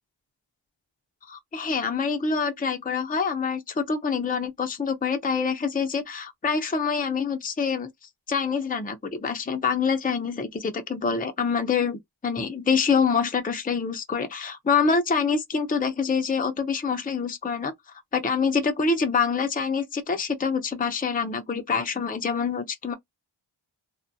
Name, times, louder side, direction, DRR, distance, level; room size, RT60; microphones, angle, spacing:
voice 1, 1.3-7.9 8.3-17.7 18.1-22.9, left 5 dB, 20° left, 0.5 m, -26 dB
2.3 x 2.1 x 2.6 m
wide cardioid pair, 45°, 48 cm